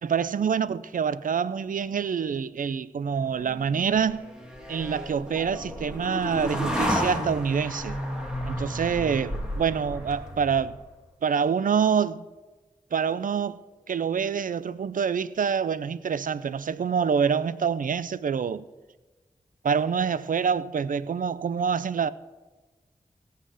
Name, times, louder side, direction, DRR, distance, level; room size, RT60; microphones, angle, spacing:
voice 1, 0.0-4.3 4.7-8.0 8.5-10.8 11.2-12.3 12.9-18.7 19.6-22.1, right 6 dB, 75° right, 0.4 m, -26 dB
sound 1, 3.4-10.8, equal, 5° right, 2.0 m, -32 dB
17.0 x 5.7 x 4.9 m
cardioid pair, 45°, 14 cm